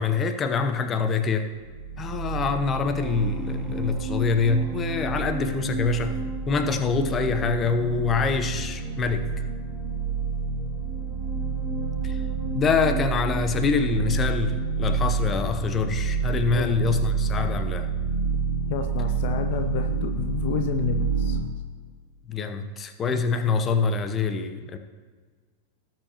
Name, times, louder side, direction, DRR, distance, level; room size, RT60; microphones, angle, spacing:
voice 1, 0.0-1.5 2.0-9.3 12.0-12.2 12.5-17.9 22.3-24.8, left 5 dB, 25° left, 8 dB, 0.9 m, -25 dB
sound 1, 1.6-21.4, right 4 dB, 85° right, 1.3 m, -29 dB
sound 2, 2.6-19.2 19.5-19.8, right 1 dB, 20° right, 1.5 m, -38 dB
voice 2, 18.7-21.4, left 8 dB, 50° left, 7 dB, 0.6 m, -31 dB
18.0 x 7.6 x 3.0 m, 1.5 s
figure-of-eight pair, 90°, 0 cm